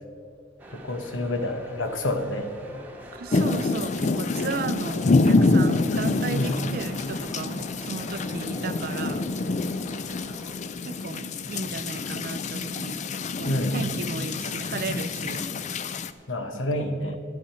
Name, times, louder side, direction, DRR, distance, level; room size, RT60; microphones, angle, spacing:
sound 1, 0.6-10.6, right 1 dB, 10° right, 1.2 m, -45 dB
voice 1, 0.7-2.5 6.3-6.6 13.4-13.8 16.3-17.2, left 1 dB, 90° left, 6 dB, 1.2 m, -28 dB
voice 2, 3.1-9.3 10.8-13.1 13.4-15.6 16.5-16.9, right 4 dB, 50° right, 15 dB, 0.4 m, -35 dB
sound 2, 3.3-16.1, left 3 dB, 40° left, 0.4 m, -26 dB
11.0 x 10.5 x 5.6 m, 2.4 s
head